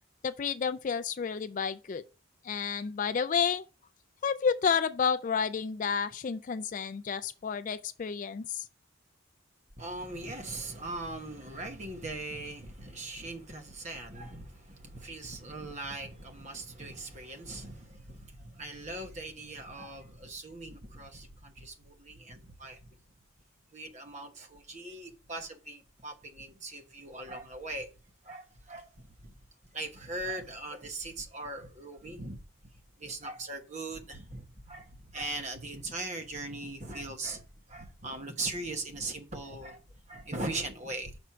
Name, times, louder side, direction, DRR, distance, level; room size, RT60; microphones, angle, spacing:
voice 1, 0.2-2.0 2.4-3.6 4.2-8.6, left 6 dB, 40° left, 0.3 m, -30 dB
voice 2, 9.8-22.9 23.7-27.9 28.2-29.3 29.7-32.4 33.0-41.2, right 2 dB, 35° right, 1.2 m, -40 dB
6.2 x 4.4 x 5.7 m
head